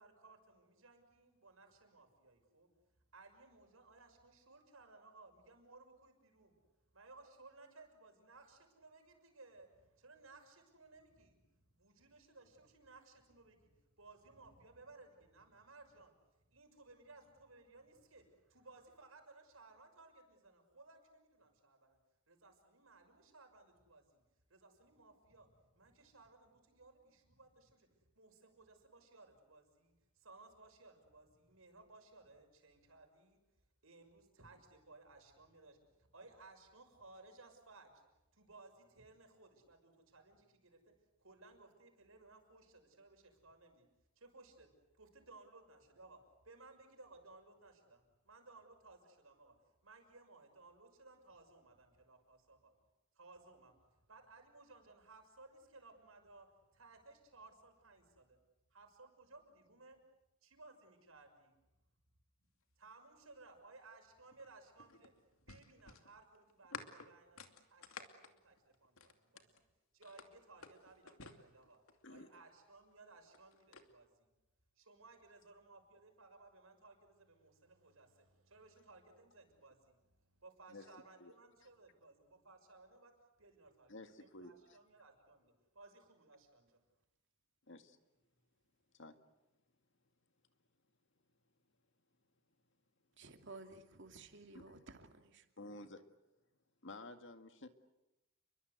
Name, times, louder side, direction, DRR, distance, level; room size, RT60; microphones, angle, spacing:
voice 1, 0.0-2.7 3.1-6.6 6.9-16.1 16.5-22.0 22.3-24.2 24.5-27.9 28.1-33.4 33.8-40.9 41.2-43.8 44.2-44.7 45.0-46.2 46.4-49.5 49.8-52.7 53.1-56.5 56.7-58.4 58.7-60.0 60.4-61.6 62.8-65.1 65.5-69.6 69.9-71.8 72.1-74.3 74.8-83.1 83.4-86.8, right 3 dB, 80° right, 6.2 m, -61 dB
sound 1, 64.3-69.6 70.0-72.1 73.1-73.9, left 4 dB, 85° left, 2.5 m, -53 dB
voice 2, 83.9-84.6 87.7-88.0 88.9-89.2 94.5-94.6 95.6-96.0 96.8-97.7, left 2 dB, 60° left, 2.0 m, -52 dB
voice 3, 93.2-95.5, right 3 dB, 60° right, 2.6 m, -54 dB
30.0 x 23.0 x 8.2 m
head